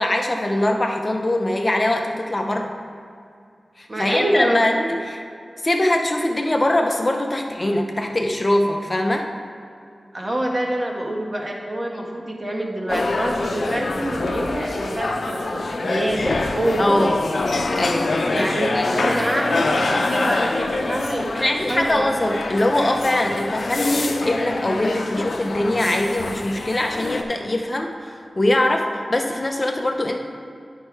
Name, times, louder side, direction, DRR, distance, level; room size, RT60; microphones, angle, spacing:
voice 1, 0.0-2.7 3.8-4.7 5.0-5.2 5.6-9.3 16.8-17.2 17.7-18.5 18.7-19.4 21.3-30.2, left 1 dB, 35° left, 3 dB, 0.7 m, -22 dB
voice 2, 3.9-4.9 10.1-15.2 15.7-17.0 18.3-22.3, right 1 dB, 35° right, -1 dB, 1.3 m, -26 dB
sound 1, 12.9-27.2, left 3 dB, 80° left, 0.6 m, -25 dB
9.1 x 5.5 x 4.6 m, 2.4 s
wide cardioid pair, 65°, 0 cm